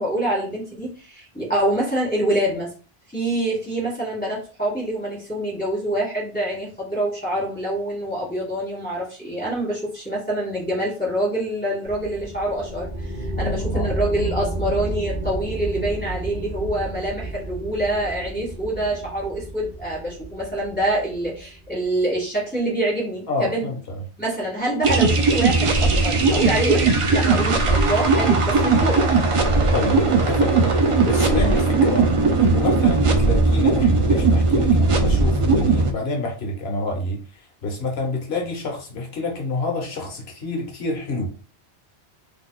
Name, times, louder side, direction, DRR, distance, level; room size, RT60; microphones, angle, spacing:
voice 1, 0.0-2.7 3.1-23.7 24.2-29.1, right 1 dB, 10° left, -7 dB, 1.6 m, -26 dB
sound 1, 11.8-21.9, right 2 dB, 15° right, 0.6 m, -31 dB
voice 2, 13.3-13.9 23.3-24.0 29.7-32.1 32.4-37.2 37.6-41.3, left 2 dB, 75° left, 1 dB, 1.1 m, -28 dB
sound 2, 24.8-35.9, right 3 dB, 60° right, 0.3 m, -18 dB
3.9 x 2.8 x 2.3 m, 0.37 s
omnidirectional pair, 1.1 m